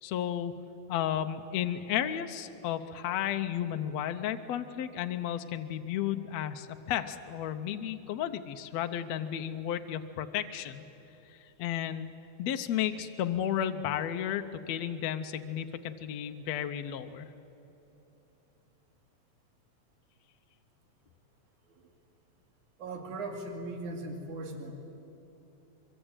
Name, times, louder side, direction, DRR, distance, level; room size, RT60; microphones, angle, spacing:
voice 1, 0.0-0.5 0.9-10.8 11.3-12.1 12.4-17.3, left 10 dB, 70° left, 7 dB, 1.8 m, -33 dB
voice 2, 22.8-24.7, right 2 dB, 75° right, 3 dB, 3.9 m, -39 dB
24.5 x 24.5 x 8.9 m, 3.0 s
omnidirectional pair, 3.5 m